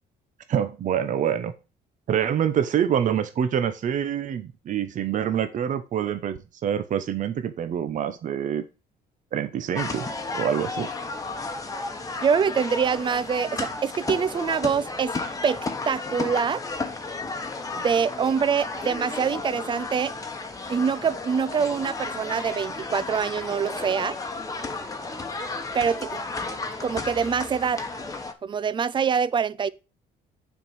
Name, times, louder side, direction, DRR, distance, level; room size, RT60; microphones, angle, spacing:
voice 1, 0.5-1.5 2.1-8.6 9.3-10.1 10.3-10.9, right 9 dB, 50° right, 0.9 m, -26 dB
sound 1, 9.7-28.3, left 3 dB, 20° left, 1.1 m, -33 dB
voice 2, 12.2-15.1 15.4-16.6 17.7-20.1 20.7-24.2 25.7-26.2 26.8-27.8 28.4-29.7, right 6 dB, 30° right, 0.4 m, -25 dB
7.0 x 4.6 x 5.2 m
cardioid pair, 110°, 17 cm